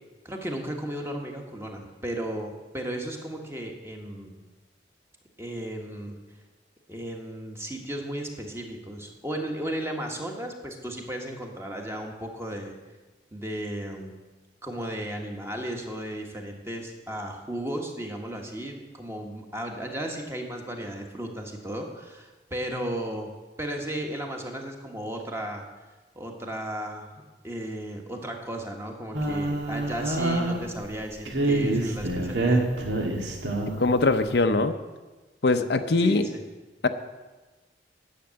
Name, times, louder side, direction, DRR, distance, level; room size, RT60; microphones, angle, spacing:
voice 1, 0.2-4.3 5.4-6.2 6.9-12.7 13.3-14.2 14.6-23.3 23.6-25.7 26.1-27.1 27.4-32.7 36.0-36.4, right 1 dB, 15° right, 2 dB, 1.4 m, -35 dB
sound 1, 29.1-30.9 31.3-33.9, right 2 dB, 80° right, 1.8 m, -26 dB
voice 2, 33.8-34.8 35.4-36.2 36.8-36.9, left 3 dB, 65° left, 9 dB, 0.6 m, -22 dB
10.5 x 6.8 x 8.7 m, 1.2 s
head